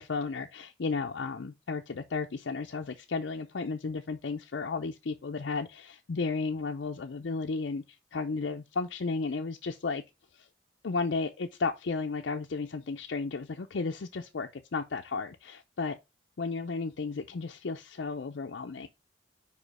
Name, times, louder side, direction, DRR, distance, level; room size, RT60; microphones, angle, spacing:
voice 1, 0.0-7.8 8.1-10.0 10.3-10.5 10.8-16.0 16.4-18.9, left 4 dB, 65° left, 0.5 m, -33 dB
5.1 x 4.9 x 4.7 m
head